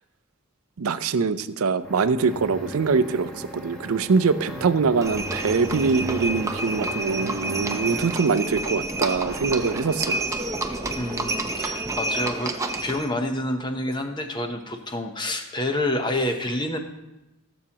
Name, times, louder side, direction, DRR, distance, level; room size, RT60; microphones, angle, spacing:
voice 1, 0.8-10.3, right 5 dB, 80° right, 13 dB, 0.5 m, -23 dB
sound 1, 1.1-8.4 9.2-10.4, equal, 5° left, 1.2 m, -38 dB
Livestock farm animals working animals, 5.0-13.1, right 2 dB, 15° right, 0.5 m, -29 dB
voice 2, 11.0-12.5 12.8-16.8, left 1 dB, 20° left, 5 dB, 0.8 m, -28 dB
16.5 x 7.2 x 2.9 m, 0.98 s
head